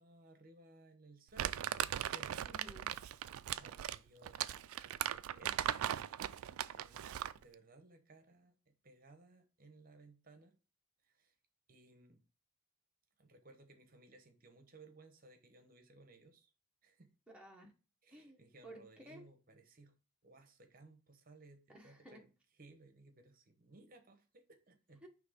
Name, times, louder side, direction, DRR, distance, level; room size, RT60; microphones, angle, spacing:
voice 1, 0.0-1.6 2.0-2.4 3.3-10.6 11.0-11.3 11.7-12.2 13.2-16.5 16.8-17.1 18.0-20.0 20.2-22.3 22.6-25.0, right 2 dB, 40° right, 6 dB, 0.9 m, -61 dB
Crumpling crinkling, 1.4-7.4, right 11 dB, 80° right, 0.3 m, -39 dB
voice 2, 2.5-2.9 17.3-17.7 18.1-19.3 21.7-22.2 25.0-25.1, right 1 dB, 5° right, 0 dB, 1.1 m, -55 dB
6.0 x 3.2 x 5.0 m, 0.34 s
head